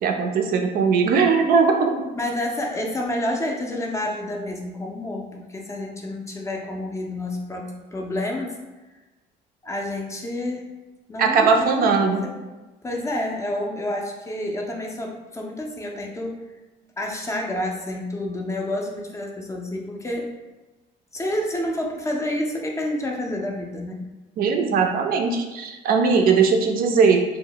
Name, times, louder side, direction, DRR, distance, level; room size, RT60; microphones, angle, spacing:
voice 1, 0.0-1.9 11.2-12.2 24.4-27.2, right 5 dB, 60° right, 4 dB, 0.4 m, -19 dB
voice 2, 2.2-8.5 9.6-10.7 11.1-12.3 12.8-16.3 17.0-20.3 21.1-24.0, left 1 dB, 15° left, 0 dB, 0.4 m, -29 dB
2.1 x 2.0 x 3.7 m, 1.1 s
cardioid pair, 110°, 17 cm